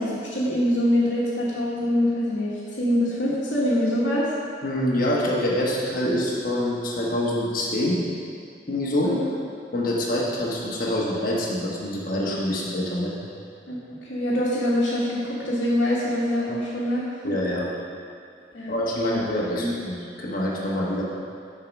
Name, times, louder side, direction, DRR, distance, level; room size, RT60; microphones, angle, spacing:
voice 1, 0.0-4.3 9.0-9.3 13.7-17.2 18.5-18.7 19.0-19.2 19.6-19.7, left 1 dB, 70° left, -9 dB, 1.5 m, -24 dB
voice 2, 4.6-8.0 8.7-9.1 9.7-13.1 17.2-17.7 18.7-21.0, left 1 dB, 45° left, -5 dB, 1.2 m, -25 dB
7.3 x 4.8 x 6.0 m, 2.4 s
head